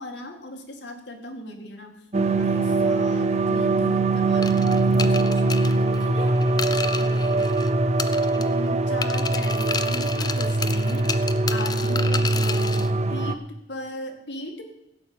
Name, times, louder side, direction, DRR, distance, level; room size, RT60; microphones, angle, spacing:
voice 1, 0.0-2.0 2.2-7.4 8.3-13.4 13.7-14.6, left 1 dB, 75° left, 4 dB, 2.1 m, -38 dB
sound 1, 2.1-13.4, right 2 dB, 40° right, 0.7 m, -22 dB
sound 2, 4.4-7.7 8.0-8.7 9.0-12.9, left 5 dB, 25° left, 0.6 m, -32 dB
16.0 x 5.4 x 8.7 m, 0.86 s
head